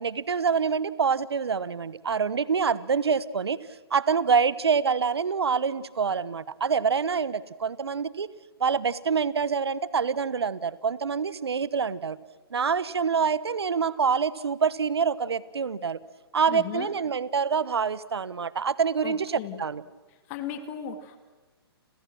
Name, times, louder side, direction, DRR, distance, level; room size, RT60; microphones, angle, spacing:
voice 1, 0.0-3.6 3.9-8.3 8.6-12.2 12.5-16.0 16.3-19.8, right 6 dB, 75° right, 18 dB, 1.1 m, -26 dB
voice 2, 16.5-16.9 19.0-19.6 20.3-21.2, left 9 dB, 35° left, 8 dB, 2.6 m, -36 dB
30.0 x 27.0 x 6.2 m, 1.2 s
figure-of-eight pair, 130°, 13 cm